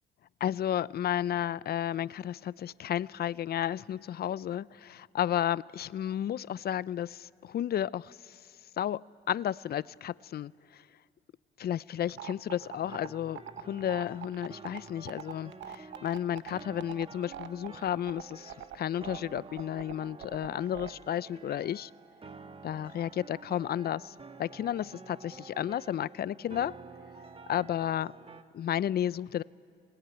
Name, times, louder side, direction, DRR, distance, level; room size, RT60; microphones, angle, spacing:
voice 1, 0.4-8.4 8.8-10.8 11.6-21.9 22.6-26.8 27.5-28.1 28.5-29.4, left 10 dB, 55° left, 0.5 m, -32 dB
sound 1, 12.1-20.9, right 10 dB, 70° right, 1.0 m, -43 dB
sound 2, 12.6-28.4, right 4 dB, 30° right, 1.4 m, -50 dB
26.5 x 20.0 x 9.2 m
cardioid pair, 90°, 20 cm